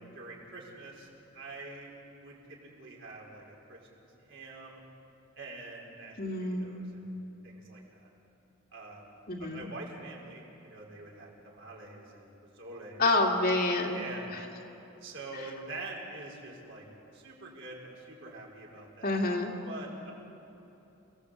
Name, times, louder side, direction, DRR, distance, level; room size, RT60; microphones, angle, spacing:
voice 1, 0.1-1.1 1.3-1.9 2.2-2.4 2.8-3.8 4.3-4.8 5.4-8.1 8.7-13.0 13.9-14.3 15.0-16.9 17.1-19.2 19.7-20.1, right 2 dB, 60° right, -2 dB, 5.5 m, -45 dB
voice 2, 6.2-6.9 9.3-9.7 13.0-14.0 19.0-19.5, left 2 dB, 45° left, 0 dB, 2.5 m, -28 dB
29.5 x 19.5 x 8.3 m, 2.9 s
head